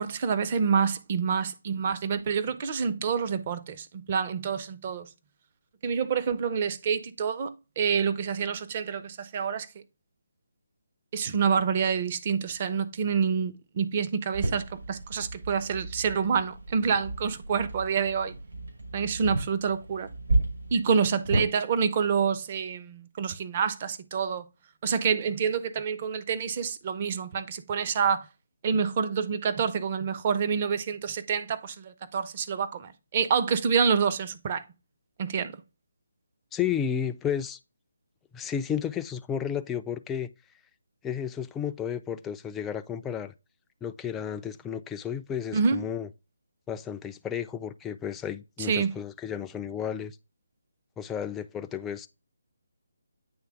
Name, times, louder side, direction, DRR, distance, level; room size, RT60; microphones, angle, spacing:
voice 1, 0.0-5.1 5.8-9.7 11.1-18.4 18.9-20.1 20.7-24.4 24.8-28.3 28.6-34.6 35.2-35.6 45.5-45.8 48.6-48.9, right 6 dB, 35° right, 0.6 m, -27 dB
sound 1, 14.3-21.5, right 2 dB, 75° right, 2.5 m, -32 dB
voice 2, 36.5-37.6 38.3-40.3 41.0-43.3 43.8-46.1 46.7-50.2 51.0-52.1, left 8 dB, 10° left, 0.3 m, -32 dB
8.8 x 3.4 x 3.5 m
figure-of-eight pair, 155°, 0 cm